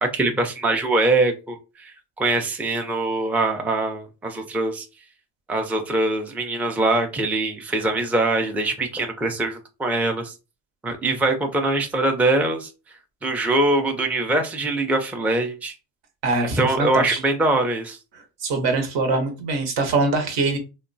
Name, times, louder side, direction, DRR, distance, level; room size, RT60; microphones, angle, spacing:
voice 1, 0.0-4.9 5.5-10.3 10.8-12.7 13.2-15.8 16.6-18.0, right 2 dB, 5° right, 4 dB, 0.4 m, -23 dB
voice 2, 16.2-17.2 18.1-20.6, right 3 dB, 70° right, 4 dB, 1.1 m, -23 dB
2.9 x 2.2 x 2.6 m, 0.30 s
supercardioid pair, 75°, 45 cm